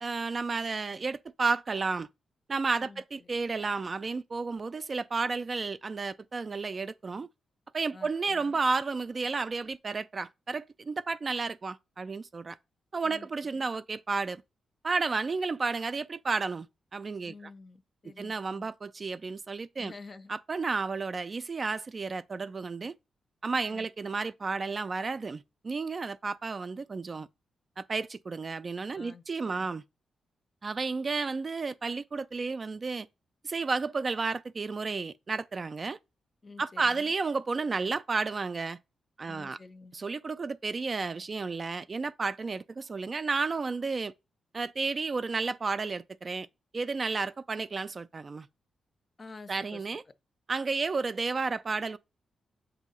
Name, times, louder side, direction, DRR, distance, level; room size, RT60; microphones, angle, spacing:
voice 1, 0.0-2.1 2.5-7.3 7.7-12.6 12.9-14.4 14.8-16.7 16.9-17.3 18.2-19.9 20.3-22.9 23.4-27.3 27.8-29.8 30.6-33.1 33.4-36.0 36.6-38.8 39.2-39.6 39.9-44.1 44.5-46.5 46.7-48.5 49.5-50.0 50.5-52.0, right 4 dB, 35° right, 0.3 m, -32 dB
voice 2, 2.8-3.3 7.9-8.6 13.0-13.3 13.5-13.7 17.2-18.7 19.8-20.3 23.7-23.9 28.9-29.7 36.4-37.1 39.3-40.0 49.2-49.9, left 3 dB, 35° left, 0.5 m, -49 dB
7.1 x 2.8 x 5.2 m
cardioid pair, 100°, 0 cm